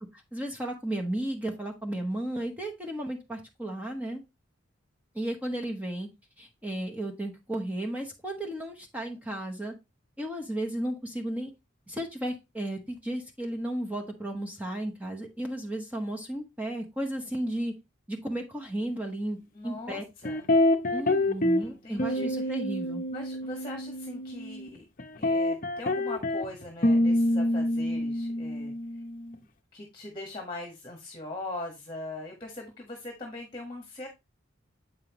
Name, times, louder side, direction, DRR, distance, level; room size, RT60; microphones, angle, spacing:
voice 1, 0.1-4.2 5.1-6.1 6.4-9.7 10.2-11.5 11.9-17.7 18.1-19.4 19.6-20.0 20.9-23.0, right 1 dB, 5° right, 1 dB, 0.9 m, -34 dB
voice 2, 19.5-20.5 21.6-22.5 23.1-24.8 25.2-28.7 29.7-34.1, left 2 dB, 20° left, 3 dB, 1.4 m, -41 dB
sound 1, 20.3-21.7 22.0-24.7 25.0-29.4, left 1 dB, 40° left, 0.7 m, -27 dB
7.8 x 5.5 x 3.0 m, 0.23 s
head